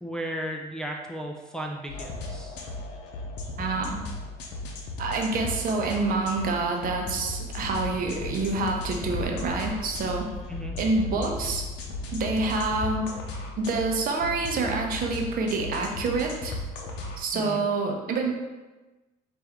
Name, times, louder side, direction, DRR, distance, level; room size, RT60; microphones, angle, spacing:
voice 1, 0.0-2.6 10.5-10.8 17.3-17.6, equal, 5° left, 0 dB, 0.4 m, -35 dB
sound 1, 1.9-17.2, left 2 dB, 90° left, 0.6 m, -36 dB
voice 2, 3.6-4.1 5.0-10.3 10.8-11.6 12.1-13.1 13.6-16.6 17.2-18.3, right 3 dB, 55° right, 2 dB, 0.7 m, -27 dB
sound 2, 7.7-12.8, left 3 dB, 55° left, 0.8 m, -40 dB
4.5 x 2.6 x 3.5 m, 1.2 s
cardioid pair, 110°, 17 cm